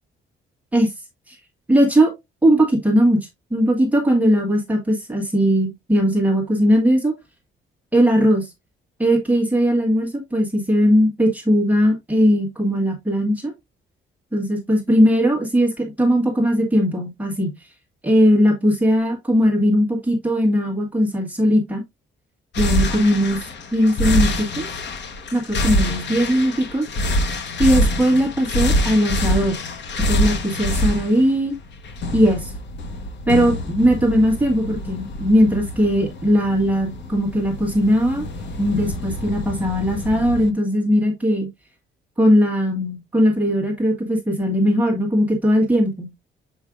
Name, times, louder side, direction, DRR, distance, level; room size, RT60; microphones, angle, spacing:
voice 1, 1.7-2.1 2.4-7.1 7.9-8.5 9.0-13.5 14.3-17.5 18.0-21.8 22.6-24.7 25.3-26.9 27.6-29.6 30.0-31.5 32.1-32.5 33.3-38.2 38.6-41.5 42.2-46.1, equal, 5° right, 1.6 m, -19 dB
sound 1, 22.5-40.5, left 1 dB, 55° left, 1.2 m, -25 dB
7.3 x 5.4 x 2.5 m
cardioid pair, 165°, 21 cm